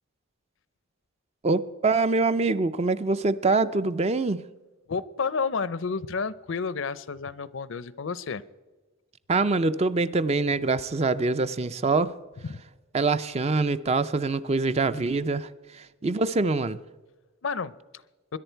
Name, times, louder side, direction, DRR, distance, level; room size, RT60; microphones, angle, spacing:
voice 1, 1.4-4.4 9.3-12.1 12.9-16.8, right 3 dB, 30° right, 13 dB, 0.4 m, -24 dB
voice 2, 4.9-8.4 12.4-12.6 17.4-18.0, left 5 dB, 65° left, 18 dB, 0.5 m, -31 dB
21.0 x 11.0 x 4.5 m, 1.2 s
head